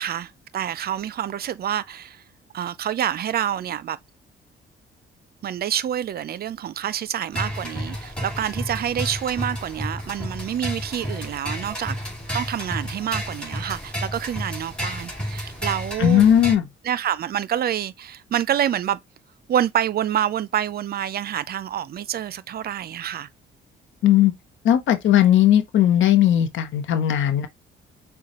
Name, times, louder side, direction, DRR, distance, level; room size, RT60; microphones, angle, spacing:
voice 1, 0.0-2.2 2.5-4.0 5.4-12.0 12.3-16.3 16.8-19.0 19.5-23.3, right 10 dB, 50° right, 0.4 m, -27 dB
sound 1, 7.3-16.6, equal, 5° left, 2.6 m, -31 dB
voice 2, 16.0-16.6 24.0-24.3 24.6-27.5, left 11 dB, 75° left, 0.8 m, -17 dB
6.5 x 2.3 x 2.9 m
cardioid pair, 90°, 20 cm